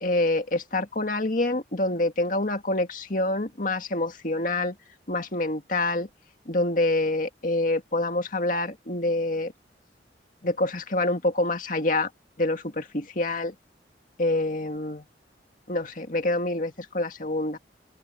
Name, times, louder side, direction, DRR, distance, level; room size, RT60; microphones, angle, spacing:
voice 1, 0.0-4.8 5.1-6.1 6.5-9.5 10.4-12.1 12.4-13.5 14.2-15.0 15.7-17.6, left 2 dB, 50° left, 2.1 m, -26 dB
open air
head